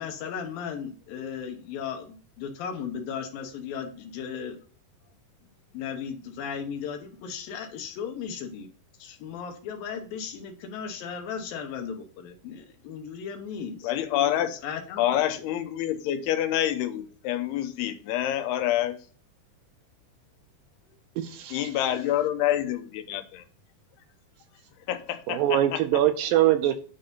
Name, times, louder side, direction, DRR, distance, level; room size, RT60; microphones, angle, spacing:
voice 1, 0.0-4.6 5.7-8.7 9.0-13.9 14.6-15.0, left 7 dB, 75° left, 6 dB, 2.6 m, -36 dB
voice 2, 13.8-14.6 15.0-19.0 21.5-23.4 24.9-25.8, left 12 dB, 90° left, 9 dB, 2.9 m, -27 dB
voice 3, 21.2-21.7 25.3-26.8, right 12 dB, 80° right, 9 dB, 2.2 m, -23 dB
9.6 x 3.9 x 5.4 m, 0.41 s
omnidirectional pair, 4.5 m